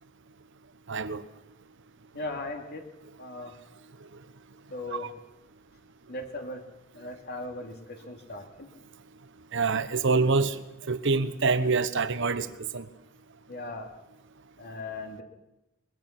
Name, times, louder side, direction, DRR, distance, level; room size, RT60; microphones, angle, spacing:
voice 1, 0.9-1.2 9.5-10.6 10.9-12.5 12.7-12.9, right 4 dB, 60° right, 13 dB, 1.1 m, -25 dB
voice 2, 2.1-2.9 3.2-3.5 4.7-5.1 6.1-6.6 6.9-8.7 13.5-13.9 14.6-15.2, left 2 dB, 50° left, 4 dB, 2.8 m, -38 dB
22.0 x 21.0 x 6.0 m, 0.95 s
head